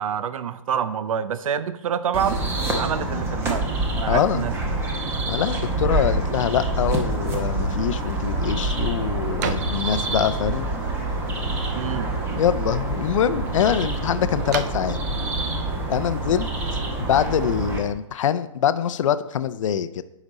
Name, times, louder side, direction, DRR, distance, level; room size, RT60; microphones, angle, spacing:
voice 1, 0.0-2.4 2.7-3.7 3.9-4.5 11.7-12.1, right 8 dB, 80° right, 13 dB, 0.5 m, -27 dB
sound 1, 2.1-17.8, right 2 dB, 15° right, 0.9 m, -26 dB
voice 2, 4.1-4.5 5.3-10.7 12.4-15.0 15.9-16.5 17.0-20.0, left 9 dB, 70° left, 14 dB, 0.5 m, -24 dB
sound 2, 7.7-16.9, right 8 dB, 35° right, 0.5 m, -40 dB
10.5 x 5.1 x 4.0 m, 0.91 s
hypercardioid pair, 160°, 17 cm